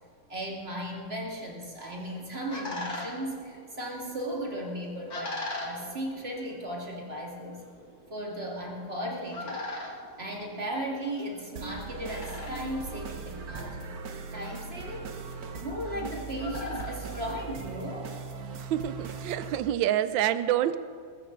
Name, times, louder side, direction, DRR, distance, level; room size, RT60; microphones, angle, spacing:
voice 1, 0.3-7.6 8.1-9.6 10.2-13.9 14.3-15.1 15.6-18.1, equal, 30° right, -1 dB, 2.4 m, -36 dB
sound 1, 1.8-18.1, left 2 dB, 45° left, 2.7 m, -43 dB
sound 2, 11.6-19.6, right 5 dB, 50° right, 1.4 m, -39 dB
voice 2, 18.5-20.8, right 12 dB, 70° right, 13 dB, 1.3 m, -27 dB
21.0 x 14.5 x 3.9 m, 2.2 s
omnidirectional pair, 2.3 m